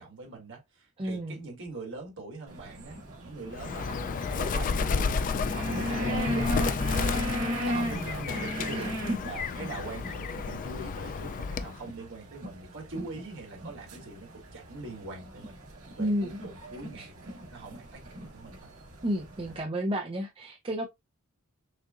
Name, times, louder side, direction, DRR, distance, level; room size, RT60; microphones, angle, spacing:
voice 1, 0.0-3.0 3.2-5.3 5.5-7.3 7.6-15.6 15.9-18.7, right 3 dB, 60° right, 2.0 m, -42 dB
voice 2, 1.0-1.4 7.7-8.2 9.1-9.2 16.0-16.4 17.0-17.1 19.0-20.9, equal, 25° right, 0.6 m, -31 dB
Penguin Calls & Noises, 2.5-19.6, equal, 75° right, 2.1 m, -37 dB
Bird, 3.5-11.8, left 5 dB, 40° left, 0.3 m, -31 dB
6.5 x 2.5 x 2.4 m
head